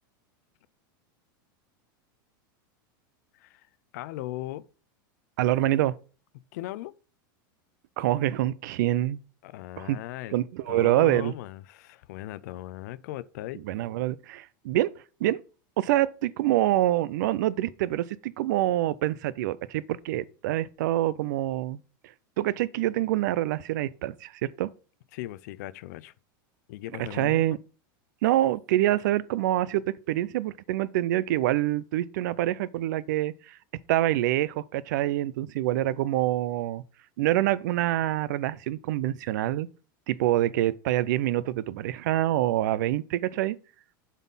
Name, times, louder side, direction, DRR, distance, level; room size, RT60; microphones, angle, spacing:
voice 1, 3.3-3.7 3.9-4.6 6.5-6.9 9.4-10.4 10.7-13.6 25.1-26.1 26.7-27.4, left 15 dB, 50° left, 0.4 m, -38 dB
voice 2, 5.4-5.9 8.0-9.2 9.8-10.0 10.3-11.3 13.6-14.9 15.2-15.4 15.8-21.8 22.4-24.7 27.0-27.6 28.2-33.6 33.9-36.8 37.2-39.7 40.1-43.6, right 14 dB, 60° right, 0.4 m, -26 dB
7.3 x 4.1 x 5.5 m
supercardioid pair, 170°, 11 cm